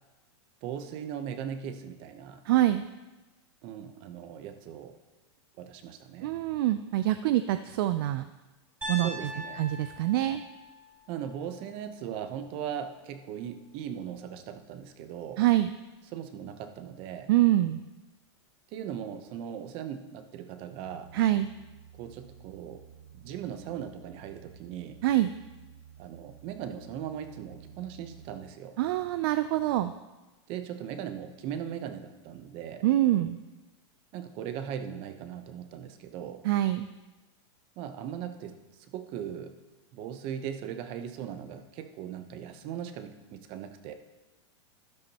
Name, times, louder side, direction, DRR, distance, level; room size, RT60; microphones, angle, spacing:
voice 1, 0.6-2.4 3.6-5.0 5.6-6.3 9.0-9.6 11.1-15.4 16.1-17.3 18.7-21.1 22.0-22.8 23.1-25.0 26.0-28.8 30.5-32.8 34.1-36.4 37.8-38.6 38.9-39.6 39.9-43.9, right 9 dB, 35° right, 9 dB, 0.8 m, -39 dB
voice 2, 2.5-2.8 6.2-8.2 8.9-9.3 9.6-10.4 15.4-15.7 17.3-17.8 21.1-21.5 25.0-25.3 28.8-29.9 32.8-33.4 36.4-36.9, right 14 dB, 55° right, 11 dB, 0.4 m, -25 dB
Piano, 8.8-12.9, equal, 10° right, 3.5 m, -42 dB
sound 1, 20.8-28.4, right 8 dB, 70° right, 0.8 m, -52 dB
12.5 x 11.5 x 2.9 m, 1.1 s
supercardioid pair, 155°, 15 cm